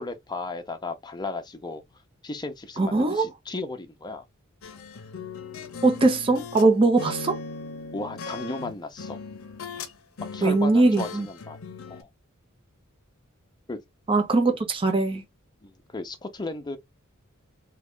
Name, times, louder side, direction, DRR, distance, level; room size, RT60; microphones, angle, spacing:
voice 1, 0.0-1.8 2.2-4.2 7.9-9.2 10.3-11.6 11.9-12.1 13.7-13.8 15.6-16.8, left 3 dB, 20° left, 0.6 m, -35 dB
voice 2, 2.8-3.3 5.8-7.4 10.4-11.3 14.1-15.2, right 3 dB, 25° right, 0.6 m, -21 dB
sound 1, 4.6-6.7 7.0-9.9 10.2-12.0, left 4 dB, 70° left, 0.6 m, -38 dB
3.6 x 2.2 x 3.5 m
head